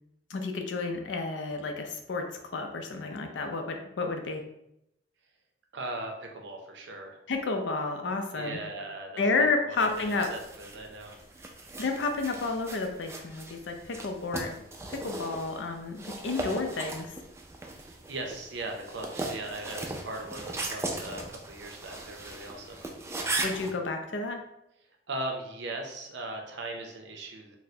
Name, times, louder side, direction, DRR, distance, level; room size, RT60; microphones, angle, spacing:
voice 1, 0.3-2.3 2.5-4.4 7.3-8.6 9.2-10.3 11.8-14.5 14.9-17.1 23.4-24.4, left 3 dB, 90° left, 5 dB, 0.5 m, -31 dB
voice 2, 5.7-7.2 8.3-11.1 17.7-22.8 25.1-27.6, right 2 dB, 70° right, 3 dB, 0.6 m, -39 dB
sound 1, 9.8-23.7, right 2 dB, 15° right, 0.3 m, -38 dB
4.0 x 2.1 x 2.7 m, 0.81 s
head